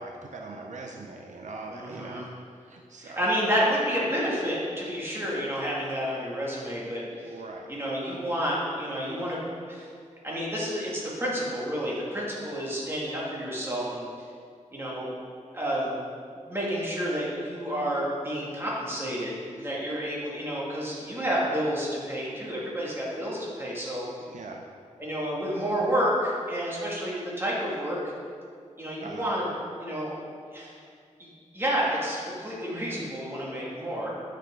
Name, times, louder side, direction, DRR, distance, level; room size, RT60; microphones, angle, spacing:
voice 1, 0.0-2.3 2.5-3.3 7.2-7.7 8.1-8.2 24.2-24.6 29.0-29.3, right 3 dB, 70° right, 1 dB, 0.6 m, -41 dB
voice 2, 1.7-2.2 3.0-7.3 7.7-9.4 9.7-9.9 10.2-14.1 14.7-15.1 15.5-15.9 16.5-24.0 25.0-28.0 28.8-29.4 29.8-30.1 30.5-30.7 31.2-31.3 31.5-34.1, equal, 20° right, -6 dB, 2.0 m, -30 dB
9.0 x 5.9 x 3.7 m, 2.2 s
wide cardioid pair, 110°, 13 cm